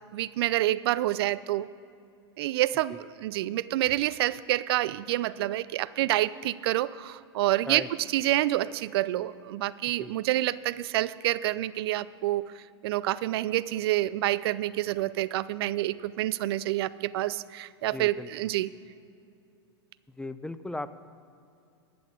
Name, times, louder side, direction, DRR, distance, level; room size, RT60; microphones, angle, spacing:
voice 1, 0.1-1.7 2.4-18.7, right 15 dB, 60° right, 18 dB, 0.4 m, -28 dB
voice 2, 17.9-18.3 20.2-20.9, left 2 dB, 5° left, 12 dB, 0.4 m, -37 dB
11.5 x 7.0 x 8.2 m, 2.5 s
hypercardioid pair, 105°, 14 cm